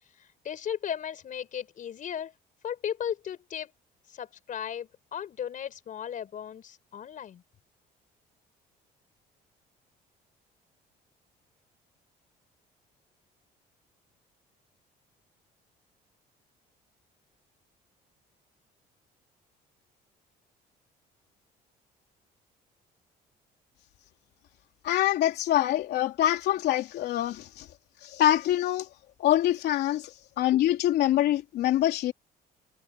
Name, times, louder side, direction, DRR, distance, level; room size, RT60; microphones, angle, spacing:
voice 1, 0.2-2.3 2.6-3.7 4.1-7.4, left 9 dB, 50° left, 4.6 m, -36 dB
voice 2, 24.8-27.7 28.0-28.9 29.2-32.1, left 13 dB, 75° left, 3.4 m, -25 dB
cardioid pair, 110°, 17 cm